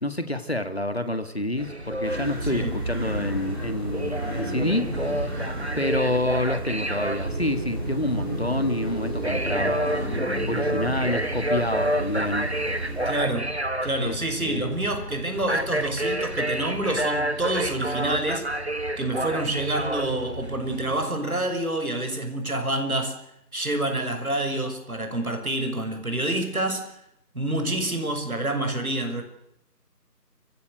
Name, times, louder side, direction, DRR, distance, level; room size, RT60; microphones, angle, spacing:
voice 1, 0.0-5.5 5.8-10.2 10.5-12.5 14.0-14.8, left 1 dB, 40° left, 1.8 m, -28 dB
sound 1, 1.6-21.0, right 1 dB, 40° right, 1.2 m, -30 dB
sound 2, 2.0-13.2, right 1 dB, 15° right, 3.2 m, -32 dB
voice 2, 2.4-2.8 13.0-13.5 13.8-18.4 19.0-23.2 23.5-26.9 27.3-29.2, right 1 dB, 60° right, 6.3 m, -27 dB
29.5 x 16.0 x 8.1 m
figure-of-eight pair, 180°, 48 cm